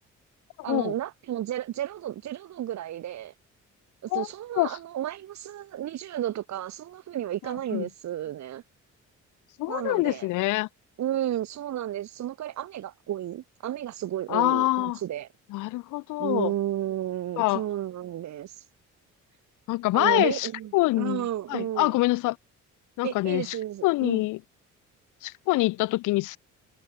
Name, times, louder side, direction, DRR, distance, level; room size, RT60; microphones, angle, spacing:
voice 1, 0.6-3.3 4.0-8.6 9.7-10.3 11.0-15.3 16.2-18.6 19.9-22.0 23.0-24.2, right 12 dB, 65° right, 1.3 m, -32 dB
voice 2, 9.6-10.7 14.3-15.0 15.5-16.5 17.4-17.6 19.7-20.5 20.7-22.4 23.0-23.5 23.8-24.4 25.2-26.4, left 19 dB, 85° left, 0.5 m, -25 dB
cardioid pair, 90°, 30 cm